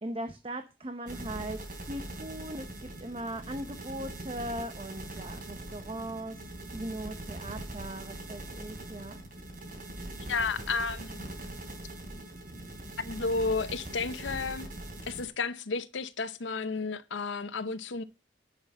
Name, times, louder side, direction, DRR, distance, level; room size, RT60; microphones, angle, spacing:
voice 1, 0.0-9.2, right 1 dB, 30° right, 0.7 m, -39 dB
sound 1, 1.1-15.3, right 1 dB, 50° right, 3.2 m, -42 dB
voice 2, 10.2-11.3 13.0-14.7 15.0-18.0, left 4 dB, 80° left, 0.8 m, -32 dB
10.0 x 5.9 x 5.3 m
head